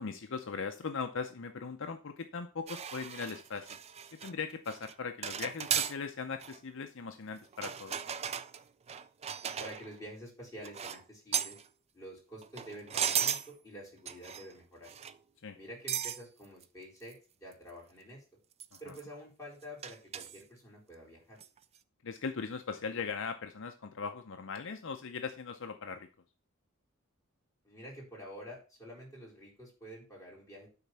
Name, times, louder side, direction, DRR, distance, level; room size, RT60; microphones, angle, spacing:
voice 1, 0.0-3.8 4.2-8.0 15.4-15.6 18.7-18.9 22.0-26.1, left 5 dB, 60° left, 7 dB, 0.6 m, -39 dB
sound 1, 2.7-4.3 4.7-4.9 5.2-6.0 6.4-6.6 7.5-10.0 10.6-11.0 11.3-11.6 12.4-13.5 14.1-14.5 14.9-15.2 15.9-16.2 16.6-16.7 17.1-17.2 17.5-17.6 18.6-19.0 19.8-20.4 21.4-21.6, right 8 dB, 30° right, 0.4 m, -36 dB
voice 2, 9.6-11.6 11.9-14.9 15.5-18.2 18.8-21.4 27.6-30.7, equal, 15° left, -5 dB, 4.3 m, -48 dB
9.6 x 4.1 x 5.7 m, 0.34 s
head